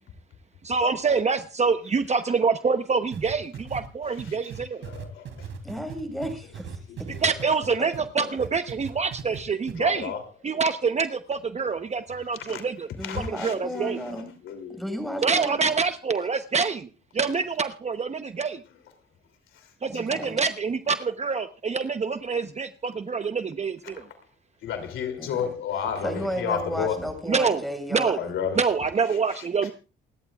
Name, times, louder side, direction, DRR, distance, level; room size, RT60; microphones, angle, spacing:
voice 1, 0.6-4.8 7.2-10.1 10.4-12.9 13.2-14.0 15.2-16.9 17.1-18.6 19.8-24.0 27.3-27.6 27.9-28.2 28.5-29.7, right 5 dB, 35° right, 0.9 m, -26 dB
sound 1, 3.1-8.0 8.4-9.4 9.7-9.8, right 7 dB, 70° right, 3.3 m, -38 dB
voice 2, 4.8-5.2 9.6-10.2 12.5-12.6 13.0-14.8 23.9-24.0 24.6-27.0 28.2-28.6, left 8 dB, 80° left, 3.0 m, -31 dB
voice 3, 5.6-7.1 8.2-8.3 13.0-14.3 14.7-15.6 19.9-20.4 25.2-28.3, equal, ahead, 7.0 m, -34 dB
28.5 x 12.0 x 2.4 m
cardioid pair, 90°, 20 cm